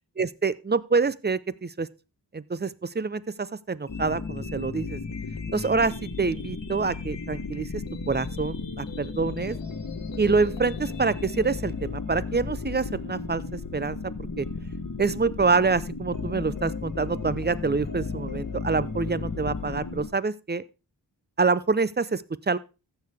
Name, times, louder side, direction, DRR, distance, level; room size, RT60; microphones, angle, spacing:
voice 1, 0.2-1.9 2.3-5.0 5.5-9.6 10.2-13.4 13.7-14.0 14.4-14.5 15.0-20.6 21.4-22.6, right 4 dB, 25° right, 0.5 m, -26 dB
sound 1, 3.9-11.9, left 4 dB, 80° left, 1.4 m, -48 dB
sound 2, 3.9-20.1, left 4 dB, 45° left, 1.3 m, -34 dB
14.5 x 6.7 x 3.5 m
wide cardioid pair, 55°, 44 cm